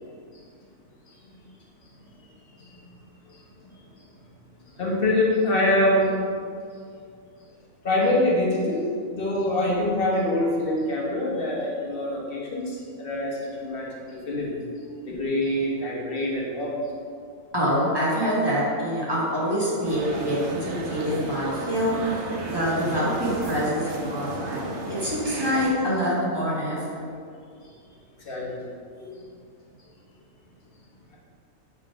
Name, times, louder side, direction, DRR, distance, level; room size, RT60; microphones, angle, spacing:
voice 1, 4.8-6.1 7.8-14.5 15.1-16.8 24.7-24.8 28.2-28.7 28.9-29.1, left 1 dB, 45° left, -4 dB, 1.3 m, -25 dB
voice 2, 17.5-24.6 24.9-27.0, equal, 20° right, -8 dB, 1.6 m, -26 dB
sound 1, 19.8-25.7, right 2 dB, 60° right, 1.1 m, -33 dB
6.2 x 4.0 x 4.6 m, 2.3 s
omnidirectional pair, 1.4 m